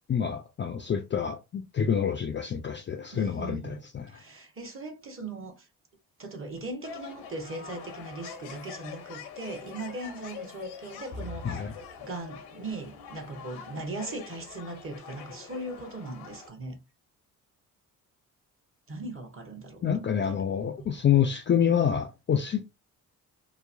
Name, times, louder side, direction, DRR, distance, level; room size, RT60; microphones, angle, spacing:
voice 1, 0.1-4.1 11.4-11.7 19.8-22.6, left 8 dB, 30° left, 0.4 m, -27 dB
voice 2, 3.1-3.8 4.1-5.7 6.2-11.7 12.0-16.8 18.9-20.4 20.8-20.9, right 2 dB, 30° right, 0.9 m, -39 dB
sound 1, 6.8-16.5, left 5 dB, 85° left, 0.7 m, -44 dB
2.9 x 2.0 x 2.4 m
supercardioid pair, 55°, 40 cm